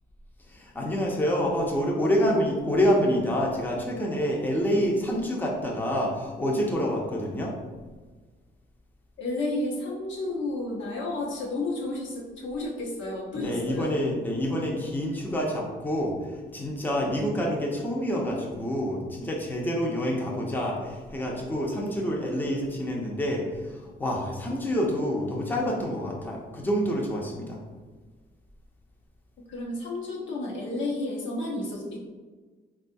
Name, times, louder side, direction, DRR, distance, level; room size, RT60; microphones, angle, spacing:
voice 1, 0.4-7.5 13.3-27.6, equal, 10° left, -2 dB, 0.7 m, -27 dB
voice 2, 9.2-13.9 29.5-32.0, left 2 dB, 70° left, -3 dB, 0.9 m, -31 dB
3.6 x 2.3 x 2.6 m, 1.3 s
cardioid pair, 70°, 21 cm